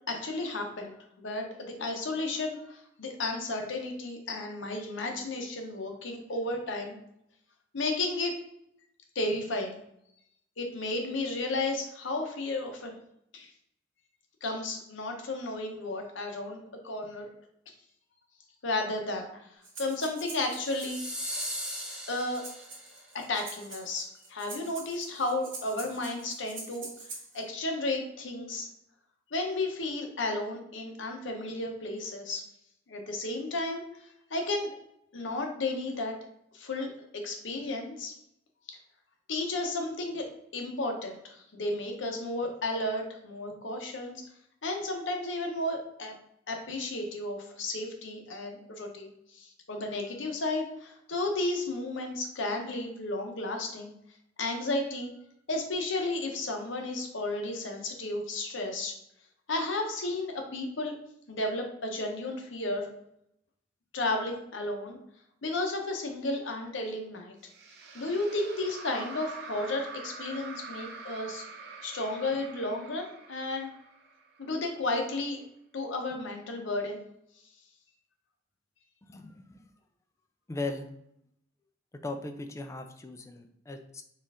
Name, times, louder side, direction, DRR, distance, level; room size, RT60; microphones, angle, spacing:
voice 1, 0.1-7.0 7.7-8.4 9.1-9.8 10.6-13.0 13.3-13.5 14.4-17.3 18.6-21.0 22.1-22.4 23.1-26.9 27.3-28.7 29.3-32.4 32.9-34.8 35.1-36.2 36.5-38.1 38.7-38.8 39.3-40.3 40.5-44.2 44.6-46.1 46.5-53.9 54.4-55.1 55.5-58.9 59.5-60.9 61.3-62.9 63.9-65.0 65.4-67.3 67.9-71.5 71.8-73.7 74.4-75.4 75.7-77.0, left 2 dB, 70° left, 3 dB, 0.8 m, -33 dB
Breathing, 19.6-27.4, right 3 dB, 80° right, 1.4 m, -46 dB
sound 1, 20.5-23.0, equal, 5° right, 1.0 m, -38 dB
sound 2, 67.4-74.7, right 4 dB, 60° right, 0.6 m, -45 dB
voice 2, 80.5-80.9 82.0-84.0, left 2 dB, 15° left, 6 dB, 0.3 m, -37 dB
4.3 x 2.4 x 3.6 m, 0.76 s
head